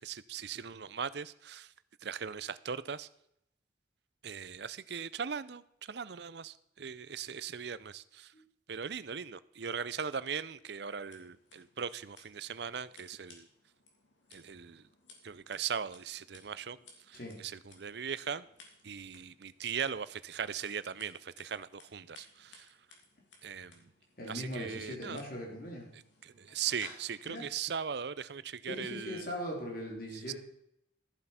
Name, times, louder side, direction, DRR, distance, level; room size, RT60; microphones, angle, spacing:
voice 1, 0.0-1.7 2.0-3.1 4.2-8.3 8.7-13.5 14.3-14.9 15.2-16.8 17.1-18.5 18.8-22.8 23.4-23.9 24.3-25.2 25.9-29.3 30.1-30.3, right 7 dB, 65° right, 0.6 m, -39 dB
Scissors, 10.9-27.5, left 3 dB, 85° left, 3.0 m, -60 dB
voice 2, 24.2-25.9 27.3-27.5 28.7-30.3, equal, 50° left, 3.6 m, -40 dB
14.0 x 7.7 x 5.8 m
head